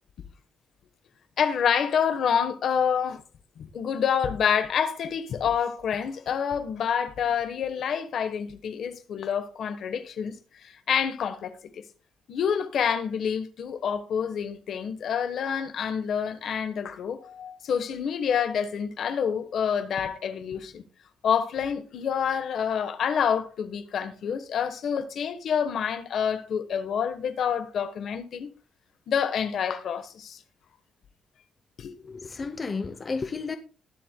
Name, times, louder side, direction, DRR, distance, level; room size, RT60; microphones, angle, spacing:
voice 1, 1.4-3.2 3.6-10.4 10.6-11.8 12.3-20.8 21.2-28.5 29.1-30.4 31.8-31.9, left 7 dB, 55° left, 1.2 m, -27 dB
voice 2, 32.0-33.6, left 4 dB, 25° left, 0.7 m, -32 dB
20.0 x 7.6 x 2.3 m
cardioid pair, 155°, 0 cm